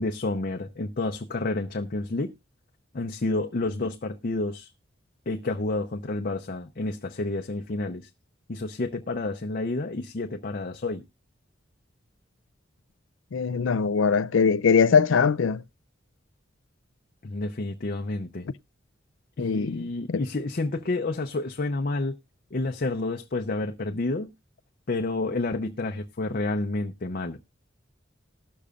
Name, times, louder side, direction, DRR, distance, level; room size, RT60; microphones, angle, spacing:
voice 1, 0.0-2.3 2.9-4.7 5.3-8.1 8.5-11.0 17.2-18.5 19.4-22.2 22.5-24.3 24.9-27.4, left 2 dB, 50° left, 0.7 m, -29 dB
voice 2, 13.3-15.6 19.4-19.8 20.1-20.2, left 5 dB, 80° left, 0.5 m, -21 dB
19.5 x 6.8 x 2.4 m
head